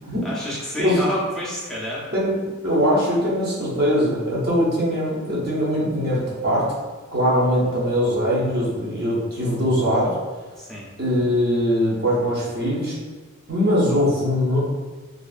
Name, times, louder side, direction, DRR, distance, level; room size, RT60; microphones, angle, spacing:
voice 1, 0.2-2.1 10.6-10.9, equal, ahead, -6 dB, 0.5 m, -29 dB
voice 2, 2.6-6.7 7.1-10.2 11.0-13.0 13.5-14.6, equal, 50° right, -7 dB, 0.8 m, -21 dB
2.5 x 2.4 x 2.4 m, 1.3 s
head